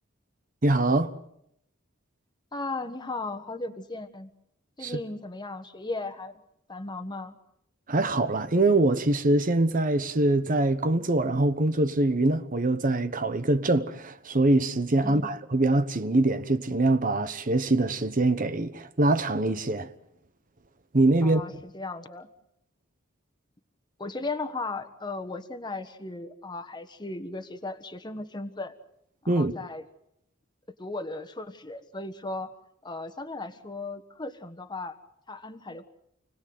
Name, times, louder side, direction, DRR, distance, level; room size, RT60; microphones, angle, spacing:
voice 1, 0.6-1.1 4.8-5.0 7.9-19.9 20.9-21.4 29.3-29.5, right 2 dB, 45° right, 1.1 m, -24 dB
voice 2, 2.5-4.3 4.8-6.3 6.7-7.4 15.0-15.3 21.2-22.3 24.0-28.7 29.2-29.8 30.8-32.6 32.8-35.0 35.3-35.8, left 2 dB, 20° left, 1.4 m, -36 dB
29.5 x 19.0 x 7.8 m
head